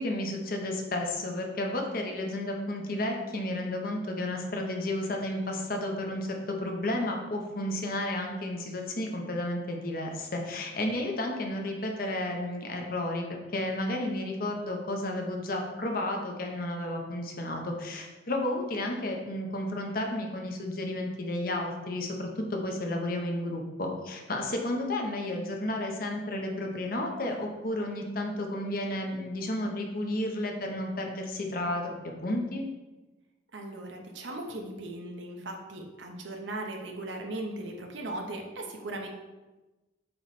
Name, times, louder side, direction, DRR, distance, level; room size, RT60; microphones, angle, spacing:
voice 1, 0.0-13.2 13.5-32.7, left 1 dB, 50° left, 2 dB, 0.9 m, -32 dB
voice 2, 33.5-39.1, right 1 dB, 80° right, 2 dB, 1.0 m, -38 dB
7.7 x 3.1 x 4.2 m, 1.1 s
head